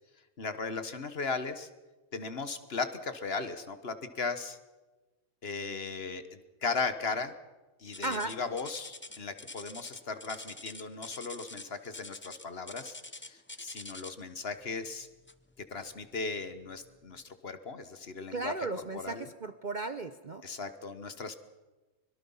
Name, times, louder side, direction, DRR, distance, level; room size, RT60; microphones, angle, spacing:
voice 1, 0.4-1.7 2.1-4.6 5.4-7.3 7.8-15.1 15.7-18.7 18.9-19.3 20.4-21.3, left 4 dB, 45° left, 10 dB, 1.4 m, -37 dB
sound 1, 7.9-14.3 15.3-15.5 16.1-16.2 16.9-17.0, left 2 dB, 15° left, 0.5 m, -46 dB
voice 2, 8.0-8.4 18.3-20.4, right 2 dB, 40° right, 11 dB, 0.8 m, -35 dB
24.5 x 22.0 x 5.6 m, 1.2 s
omnidirectional pair, 1.5 m